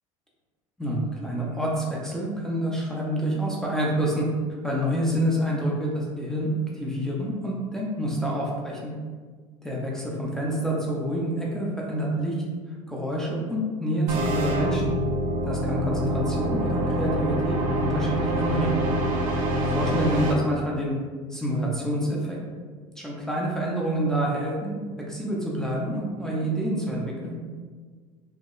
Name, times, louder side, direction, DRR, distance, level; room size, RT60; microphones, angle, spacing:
voice 1, 0.8-4.3 4.6-8.9 9.6-12.4 12.9-14.9 15.4-18.8 19.7-20.9 21.3-22.4 23.0-24.8 25.1-27.4, right 1 dB, 5° left, -4 dB, 0.6 m, -27 dB
sound 1, 14.1-20.3, equal, 80° right, 0.5 m, -25 dB
3.0 x 2.1 x 2.3 m, 1.5 s
hypercardioid pair, 80°, 18 cm